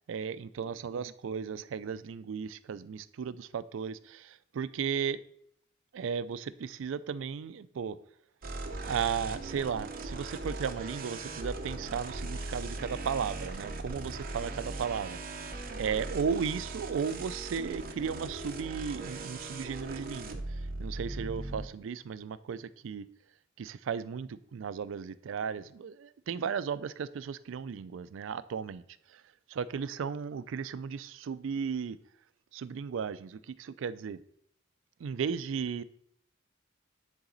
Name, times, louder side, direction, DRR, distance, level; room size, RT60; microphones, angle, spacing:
voice 1, 0.1-5.2 5.9-8.0 8.8-15.2 15.8-20.4 20.8-23.0 23.6-28.8 29.5-32.0 32.5-34.2 35.0-35.8, right 6 dB, 70° right, 15 dB, 0.4 m, -35 dB
sound 1, 8.4-21.7, right 2 dB, 45° right, 0.8 m, -39 dB
9.9 x 4.0 x 3.9 m, 0.69 s
head